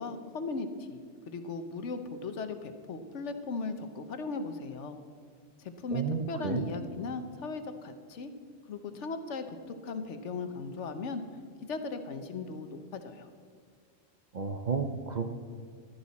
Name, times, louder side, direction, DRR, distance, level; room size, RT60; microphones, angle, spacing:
voice 1, 0.0-5.0 5.6-8.3 8.7-11.2 11.7-13.3, left 3 dB, 80° left, 8 dB, 1.2 m, -37 dB
voice 2, 5.9-6.7 14.3-15.3, right 5 dB, 45° right, 6 dB, 0.7 m, -32 dB
14.0 x 12.5 x 4.1 m, 2.1 s
omnidirectional pair, 1.2 m